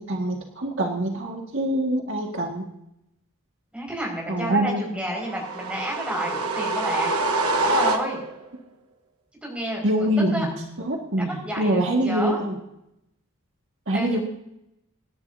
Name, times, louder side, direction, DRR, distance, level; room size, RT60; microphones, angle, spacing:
voice 1, 0.0-2.7 4.3-4.8 9.8-10.5 10.9-12.6 13.9-14.2, right 1 dB, 60° right, 0 dB, 1.9 m, -24 dB
voice 2, 3.7-7.1 7.6-8.2 9.4-10.5 11.2-12.4 13.9-14.2, equal, 5° right, -2 dB, 5.4 m, -30 dB
sound 1, 5.3-8.5, right 2 dB, 90° right, 1.3 m, -25 dB
26.0 x 11.0 x 2.7 m, 0.83 s
head